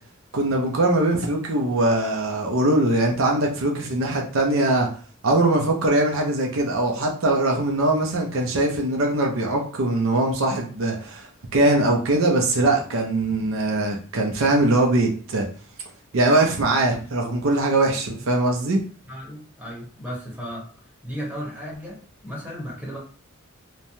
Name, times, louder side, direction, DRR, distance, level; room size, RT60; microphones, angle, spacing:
voice 1, 0.3-4.9 5.2-15.5 16.1-18.8, right 2 dB, 65° right, 1 dB, 0.6 m, -21 dB
voice 2, 19.1-20.7 21.0-23.0, equal, 5° right, -5 dB, 1.0 m, -35 dB
3.2 x 2.1 x 2.7 m, 0.42 s
head